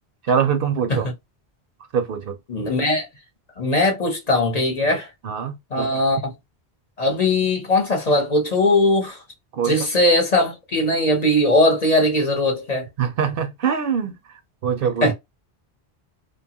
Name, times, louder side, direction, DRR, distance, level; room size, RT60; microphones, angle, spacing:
voice 1, 0.3-1.1 1.9-2.3 5.2-5.9 9.5-9.8 13.0-14.2 14.6-15.1, right 7 dB, 65° right, 0.7 m, -23 dB
voice 2, 2.5-3.1 3.6-5.1 5.7-6.3 7.0-9.2 9.6-12.8 15.0-15.1, left 1 dB, 45° left, 0.8 m, -19 dB
2.7 x 2.3 x 2.7 m
omnidirectional pair, 1.1 m